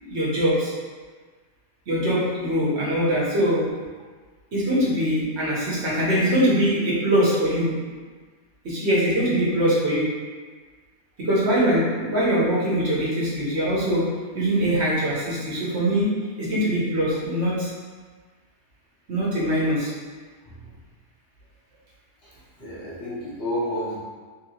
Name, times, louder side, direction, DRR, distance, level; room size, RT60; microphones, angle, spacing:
voice 1, 0.0-0.7 1.9-3.7 4.5-7.7 8.6-10.1 11.2-14.1 14.3-16.1 16.4-17.7 19.1-19.9, equal, 60° right, -7 dB, 1.2 m, -22 dB
voice 2, 22.6-24.0, equal, 60° left, -9 dB, 1.0 m, -31 dB
3.4 x 2.8 x 2.8 m, 1.5 s
omnidirectional pair, 1.3 m